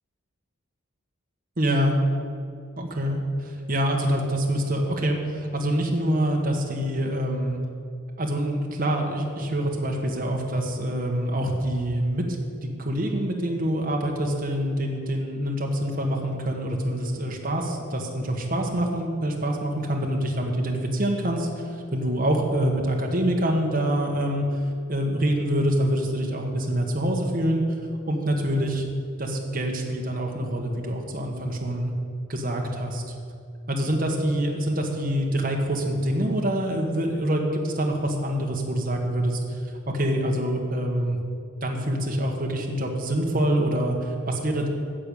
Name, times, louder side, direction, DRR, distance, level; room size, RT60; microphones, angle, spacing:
voice 1, 1.6-2.0 2.8-7.6 8.2-12.2 12.6-24.6 24.9-27.6 28.1-28.8 29.2-31.9 32.3-33.0 33.7-41.2 41.6-44.7, right 1 dB, 40° right, 0 dB, 1.4 m, -26 dB
11.0 x 6.9 x 8.5 m, 2.4 s
head